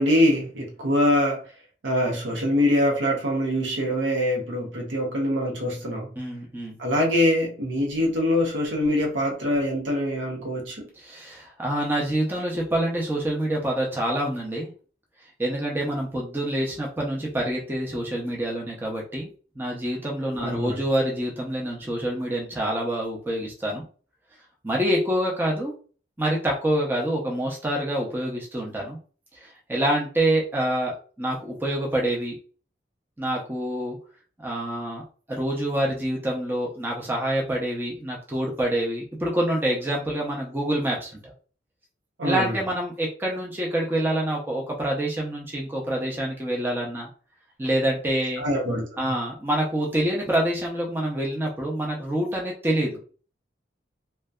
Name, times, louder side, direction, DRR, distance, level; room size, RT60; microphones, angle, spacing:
voice 1, 0.0-1.4 1.8-6.1 6.8-10.9 20.4-20.8 42.2-42.6 48.4-48.8, left 1 dB, 90° right, 0.6 m, -24 dB
voice 2, 6.2-6.8 11.0-14.7 15.4-19.3 19.6-23.8 24.6-25.7 26.2-29.0 29.3-30.9 31.2-32.4 33.2-34.0 34.4-35.0 35.3-41.3 42.2-47.1 47.6-48.4 49.0-53.0, right 1 dB, 10° right, 0.5 m, -26 dB
2.5 x 2.1 x 2.2 m
head